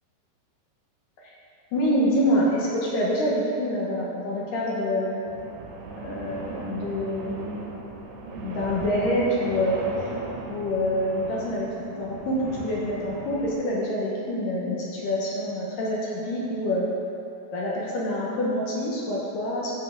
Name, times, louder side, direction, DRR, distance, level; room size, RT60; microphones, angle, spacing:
voice 1, 1.7-5.2 6.0-7.7 8.4-9.8 10.5-11.7 12.0-16.9 17.5-19.7, equal, 70° left, -5 dB, 2.2 m, -26 dB
sound 1, 5.3-13.5, right 3 dB, 90° right, 3.5 m, -37 dB
14.0 x 5.4 x 3.6 m, 2.8 s
omnidirectional pair, 5.0 m